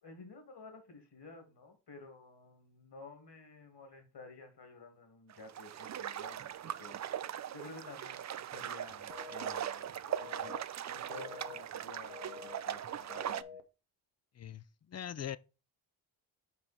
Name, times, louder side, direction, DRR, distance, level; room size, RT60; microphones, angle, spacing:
voice 1, 0.0-10.6 10.9-13.6, left 3 dB, 55° left, 2.5 m, -52 dB
sound 1, 5.3-13.4, right 10 dB, 35° right, 0.4 m, -40 dB
sound 2, 9.1-9.6 10.1-10.6 11.1-11.6 12.1-12.6 13.1-13.6, left 6 dB, 80° left, 0.9 m, -48 dB
voice 2, 14.3-15.4, left 9 dB, 35° left, 0.4 m, -42 dB
5.6 x 4.7 x 4.3 m
supercardioid pair, 50°, 49 cm